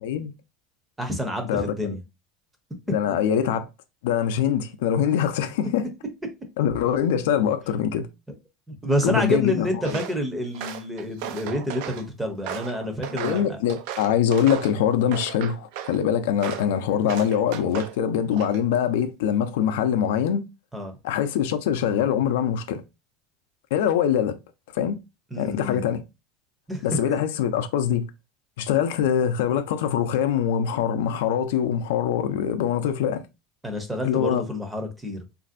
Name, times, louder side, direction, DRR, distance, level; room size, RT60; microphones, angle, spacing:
voice 1, 0.0-0.3 1.4-2.0 2.9-3.7 4.0-5.9 6.6-8.1 9.0-10.0 13.1-20.4 21.0-22.8 23.7-24.4 24.7-25.0 25.4-26.0 26.8-28.1 28.6-33.2 34.0-34.4, left 9 dB, 85° left, 0.4 m, -23 dB
voice 2, 1.0-2.0 8.7-13.6 20.7-21.0 25.3-25.9 26.7-26.8 27.1-27.2 33.6-35.2, equal, 5° right, 0.6 m, -28 dB
Walk footsteps, 9.8-10.2 10.5-12.0 12.5-14.8 15.1-16.0 16.4-16.7 17.1-18.0 18.3-18.8, right 10 dB, 65° right, 0.3 m, -35 dB
3.1 x 2.5 x 2.5 m
supercardioid pair, 150°, 0 cm